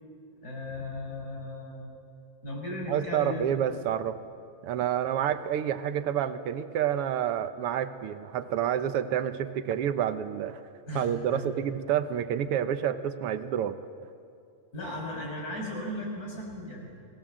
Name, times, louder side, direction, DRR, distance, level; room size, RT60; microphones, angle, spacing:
voice 1, 0.4-1.9 2.4-3.6 10.9-11.5 14.7-17.0, left 1 dB, 30° left, -1 dB, 6.3 m, -36 dB
voice 2, 2.9-4.2 4.6-10.6 10.9-13.8, right 9 dB, 65° right, 10 dB, 1.7 m, -29 dB
30.0 x 20.5 x 7.6 m, 2.4 s
omnidirectional pair, 3.3 m